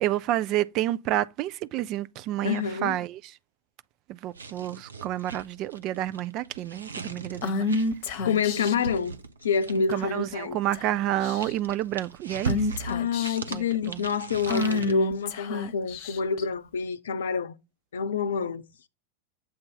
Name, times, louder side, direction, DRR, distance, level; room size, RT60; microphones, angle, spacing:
voice 1, 0.0-3.3 4.1-7.8 9.9-12.7 13.5-14.0, right 13 dB, 40° right, 0.4 m, -29 dB
voice 2, 2.4-3.0 8.2-10.6 12.8-17.5 17.9-18.6, left 6 dB, 65° left, 0.6 m, -27 dB
sound 1, 4.3-10.1 11.0-14.9, right 4 dB, 75° right, 0.7 m, -38 dB
Female speech woman speaking / Whispering, 7.4-8.9 9.9-10.3 10.7-10.9 11.2-11.7 12.5-13.5 14.5-16.4, left 3 dB, 50° left, 0.9 m, -29 dB
7.8 x 2.6 x 5.3 m
figure-of-eight pair, 90°, 0 cm